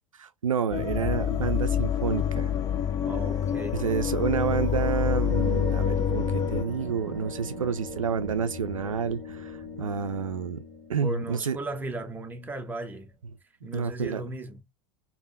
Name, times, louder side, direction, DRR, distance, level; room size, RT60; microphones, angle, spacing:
voice 1, 0.2-2.5 3.8-10.6 10.9-11.6 13.7-14.2, right 7 dB, 85° right, 0.4 m, -29 dB
sound 1, 0.6-11.9, left 9 dB, 55° left, 0.7 m, -43 dB
sound 2, 0.7-6.6, left 9 dB, 20° left, 0.3 m, -27 dB
voice 2, 3.1-3.8 11.0-13.1 13.6-14.7, right 2 dB, 10° right, 0.7 m, -36 dB
sound 3, 5.2-12.5, right 5 dB, 45° right, 0.8 m, -41 dB
3.4 x 2.2 x 2.6 m
figure-of-eight pair, 85°, 17 cm